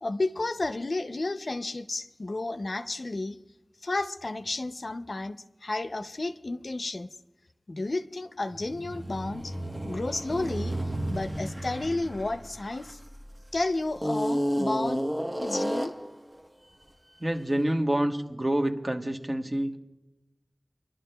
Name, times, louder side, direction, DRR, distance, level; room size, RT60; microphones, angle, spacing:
voice 1, 0.0-3.4 3.8-7.1 7.7-9.5 9.8-10.8 11.1-13.0 13.5-15.1 15.4-15.9, left 2 dB, 75° left, 10 dB, 0.4 m, -32 dB
sound 1, 8.5-13.3 14.0-16.1, equal, 20° right, 0.9 m, -32 dB
voice 2, 17.2-19.8, right 1 dB, 40° right, 4 dB, 1.0 m, -27 dB
28.5 x 11.5 x 2.2 m, 0.99 s
wide cardioid pair, 50°, 0 cm